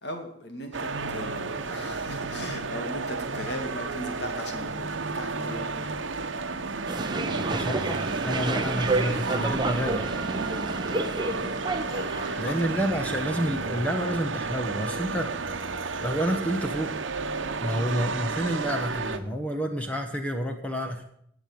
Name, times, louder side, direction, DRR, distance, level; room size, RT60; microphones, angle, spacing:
voice 1, 0.0-6.2 11.8-12.7, equal, 60° left, 4 dB, 2.5 m, -38 dB
sound 1, 0.7-19.2, right 4 dB, 85° right, 1.0 m, -32 dB
sound 2, 6.9-12.6, right 2 dB, 25° right, 0.9 m, -30 dB
voice 2, 7.5-10.2 12.4-15.4 16.0-16.9 17.6-21.0, equal, 5° left, 4 dB, 1.2 m, -29 dB
16.5 x 7.9 x 7.0 m, 0.69 s
head